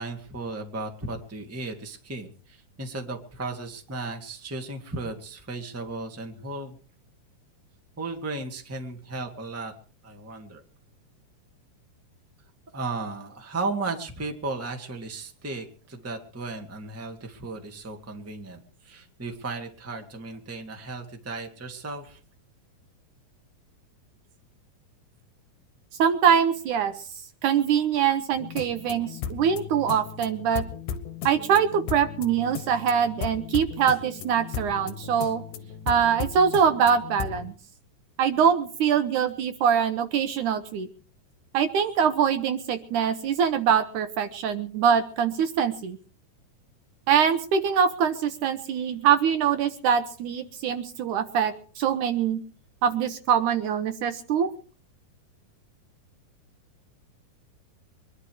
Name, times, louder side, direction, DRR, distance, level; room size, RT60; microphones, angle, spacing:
voice 1, 0.0-6.8 8.0-9.7 10.0-10.6 12.7-22.2, right 3 dB, 5° right, 4 dB, 1.3 m, -35 dB
voice 2, 26.0-26.9 27.4-30.6 31.2-35.4 35.9-37.5 38.2-40.9 41.5-46.0 47.1-52.4 52.8-54.5, right 7 dB, 70° right, 10 dB, 2.2 m, -23 dB
sound 1, 28.3-37.5, left 7 dB, 70° left, 2.7 m, -36 dB
24.0 x 11.5 x 4.8 m, 0.41 s
omnidirectional pair, 4.1 m